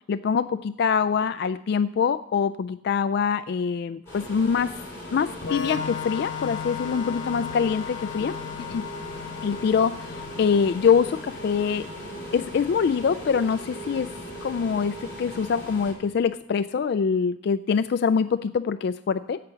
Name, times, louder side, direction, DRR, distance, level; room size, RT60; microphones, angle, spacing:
voice 1, 0.1-4.7 5.1-8.8 9.4-11.9 12.3-14.1 14.4-19.4, left 6 dB, 60° left, 13 dB, 0.3 m, -24 dB
sound 1, 4.1-15.9, left 1 dB, 15° left, 5.7 m, -39 dB
Organ, 5.4-12.9, left 7 dB, 75° left, 1.1 m, -37 dB
sound 2, 6.8-15.3, right 5 dB, 35° right, 1.8 m, -45 dB
16.0 x 5.8 x 6.8 m, 0.87 s
head